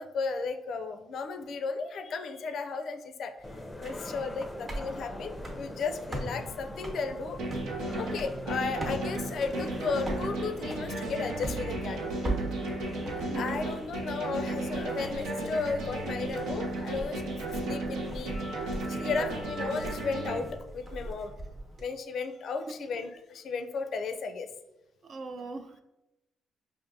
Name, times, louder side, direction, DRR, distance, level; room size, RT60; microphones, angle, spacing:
voice 1, 0.0-3.3 3.8-7.4 8.0-12.0 13.3-18.4 18.9-20.5 20.7-21.3 21.8-24.5, left 4 dB, 65° left, 7 dB, 0.4 m, -34 dB
sound 1, 3.4-20.6, left 1 dB, 15° left, 0.5 m, -44 dB
sound 2, 3.4-21.8, right 1 dB, 30° right, 0.9 m, -41 dB
sound 3, 7.4-20.4, right 2 dB, 85° right, 0.8 m, -34 dB
voice 2, 13.3-13.6 25.1-25.8, right 3 dB, 50° right, 8 dB, 0.4 m, -40 dB
5.0 x 2.5 x 2.6 m, 0.95 s
cardioid pair, 90°, 0 cm